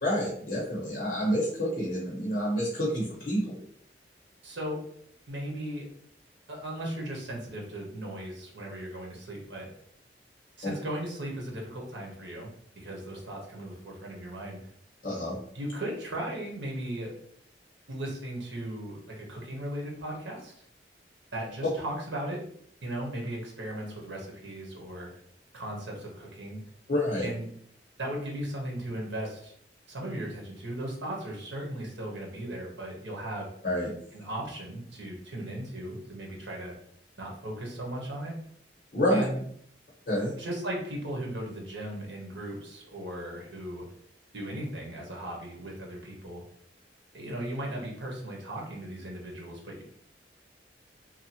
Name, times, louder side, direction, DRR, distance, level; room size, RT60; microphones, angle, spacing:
voice 1, 0.0-3.6 10.6-10.7 15.0-15.3 26.9-27.3 33.6-33.9 38.9-39.2 40.1-40.3, equal, 50° left, -7 dB, 1.0 m, -28 dB
voice 2, 4.4-4.8 5.3-5.9 6.5-9.7 10.6-14.6 15.5-17.1 17.9-20.5 21.3-22.4 22.8-25.1 25.5-26.6 27.2-27.5 28.0-29.5 29.9-33.5 34.1-36.7 37.2-38.3 39.1-39.4 40.4-43.9 44.3-46.4 47.1-49.8, right 1 dB, 80° right, -1 dB, 0.9 m, -37 dB
2.8 x 2.3 x 2.8 m, 0.65 s
head